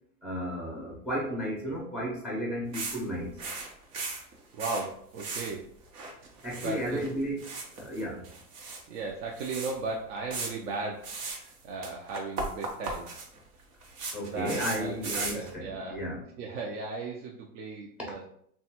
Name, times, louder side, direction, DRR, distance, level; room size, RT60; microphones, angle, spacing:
voice 1, 0.2-3.4 6.4-8.3 14.1-16.2, equal, 5° right, -2 dB, 0.5 m, -33 dB
sound 1, 2.7-3.0 3.3-4.9 5.2-5.5 5.8-7.1 7.4-8.8 9.1-9.2 9.4-9.7 10.3-10.5 11.0-11.5 11.8-15.5, right 3 dB, 85° right, 0.9 m, -37 dB
voice 2, 4.5-5.7 6.6-7.1 8.9-13.2 14.2-16.0 16.4-18.2, right 3 dB, 55° right, -1 dB, 0.6 m, -36 dB
3.1 x 2.3 x 2.9 m, 0.65 s
supercardioid pair, 140°, 45 cm